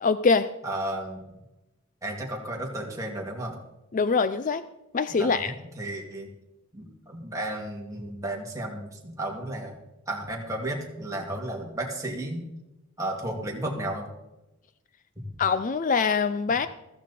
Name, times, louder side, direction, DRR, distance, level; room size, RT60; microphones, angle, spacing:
voice 1, 0.0-0.5 3.9-4.6 4.9-5.5 15.4-16.7, left 5 dB, 35° left, 13 dB, 0.4 m, -23 dB
voice 2, 0.6-1.4 2.0-3.6 5.1-6.3 6.7-9.8 10.1-12.4 13.0-14.1, right 1 dB, 15° right, -1 dB, 2.5 m, -33 dB
14.5 x 14.5 x 4.3 m, 0.97 s
head